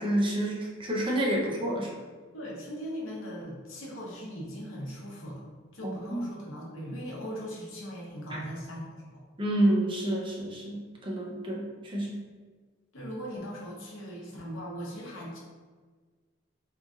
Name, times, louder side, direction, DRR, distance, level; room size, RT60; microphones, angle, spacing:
voice 1, 0.0-1.9 5.8-6.2 8.3-8.4 9.4-12.2, right 1 dB, 25° right, -2 dB, 0.6 m, -29 dB
voice 2, 2.3-5.4 5.7-9.2 12.9-15.4, equal, 75° left, -3 dB, 0.8 m, -39 dB
3.0 x 2.4 x 3.6 m, 1.4 s
head